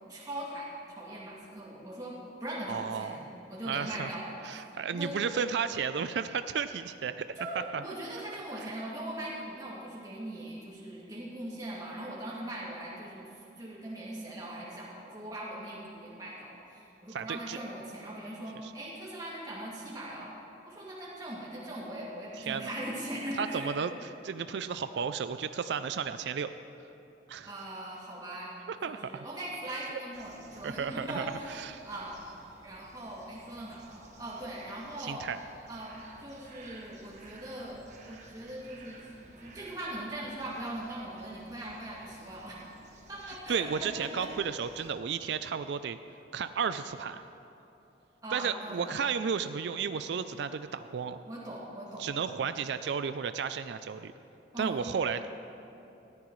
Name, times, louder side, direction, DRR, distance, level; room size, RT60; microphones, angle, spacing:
voice 1, 0.1-0.7 1.0-4.4 4.9-5.1 7.4-20.3 20.6-23.7 27.4-32.2 32.6-35.3 35.7-42.6 43.1-44.3 48.2-49.0 51.3-52.2 54.5-55.0, right 1 dB, 20° right, -7 dB, 2.3 m, -40 dB
voice 2, 2.7-3.2 3.7-4.1 4.4-7.3 7.7-7.8 17.1-17.6 18.6-18.7 22.5-22.7 23.4-23.9 24.2-26.5 27.3-27.5 28.7-29.2 30.6-31.8 35.0-35.4 43.5-46.0 46.3-47.3 48.3-51.2 52.0-54.1 54.6-55.2, right 6 dB, 70° right, 11 dB, 0.4 m, -33 dB
sound 1, 30.1-44.9, right 2 dB, 40° right, 1.2 m, -55 dB
19.5 x 14.0 x 3.1 m, 3.0 s
head